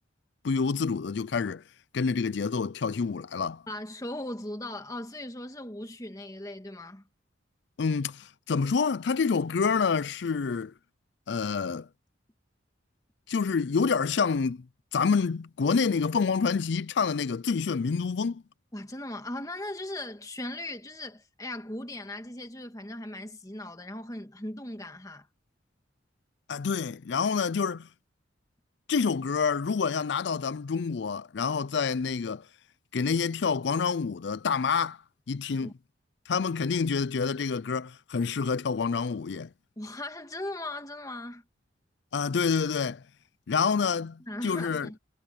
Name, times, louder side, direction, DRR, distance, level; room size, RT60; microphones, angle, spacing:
voice 1, 0.4-1.6 1.9-3.6 7.8-10.7 11.3-11.9 13.3-14.7 14.9-18.4 26.5-27.9 28.9-32.5 32.9-35.0 35.3-35.7 36.3-39.5 42.1-43.0 43.5-44.9, left 5 dB, 60° left, 0.4 m, -27 dB
voice 2, 3.7-7.0 18.7-25.3 35.6-35.7 39.8-41.4 44.3-45.0, left 1 dB, 20° left, 1.8 m, -38 dB
head